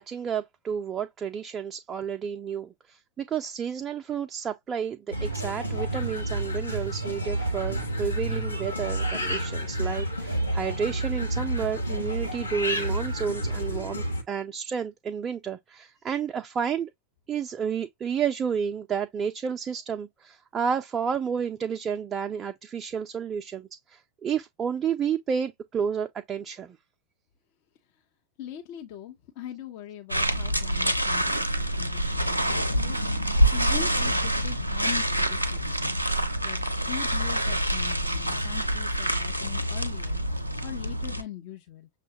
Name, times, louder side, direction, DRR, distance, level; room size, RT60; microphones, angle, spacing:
voice 1, 0.0-16.9 17.3-26.8, right 7 dB, 25° right, 0.4 m, -31 dB
sound 1, 5.1-14.2, right 1 dB, 85° left, 0.8 m, -30 dB
voice 2, 28.4-35.9 36.4-40.2 40.6-41.9, left 11 dB, 45° left, 0.6 m, -41 dB
sound 2, 30.1-41.2, right 1 dB, 90° right, 0.5 m, -26 dB
6.0 x 2.1 x 2.7 m
figure-of-eight pair, 90°, 0 cm